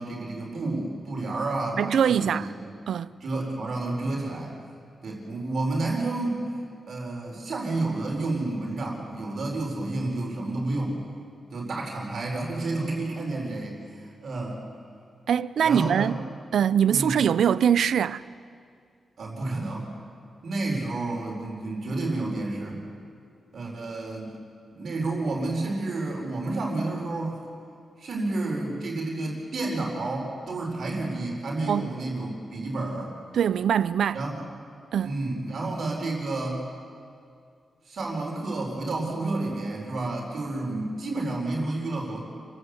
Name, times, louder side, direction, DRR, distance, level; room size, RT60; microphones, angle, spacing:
voice 1, 0.0-2.5 3.2-4.5 5.0-6.5 6.9-11.0 11.5-14.6 15.6-16.1 16.9-17.2 19.2-19.9 20.4-22.8 23.5-24.3 24.7-27.4 28.0-33.1 34.1-34.4 35.0-36.6 37.9-42.2, right 2 dB, 55° right, 4.3 m, -30 dB
voice 2, 1.8-2.5 2.9-3.1 15.3-16.2 16.5-18.2 31.7-31.9 33.3-34.2 34.9-35.1, right 8 dB, 85° right, 0.5 m, -23 dB
28.0 x 15.0 x 8.1 m
wide cardioid pair, 150°, 0 cm